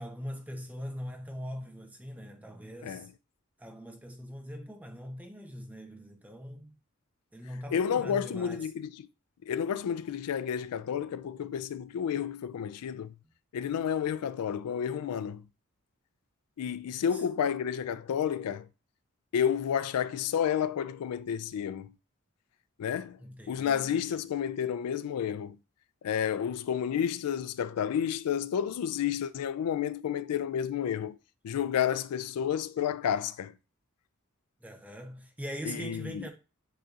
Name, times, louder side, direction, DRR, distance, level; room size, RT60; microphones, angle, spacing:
voice 1, 0.0-3.1 3.6-6.7 7.3-8.6 17.1-17.2 23.2-24.2 34.6-36.3, equal, 5° right, 0.6 m, -42 dB
voice 2, 7.7-8.9 9.4-13.1 13.5-15.4 16.6-18.7 19.3-21.9 22.8-23.2 23.5-25.6 26.0-31.2 31.4-33.5 35.7-36.2, left 8 dB, 90° left, 0.3 m, -31 dB
7.8 x 2.7 x 2.4 m
head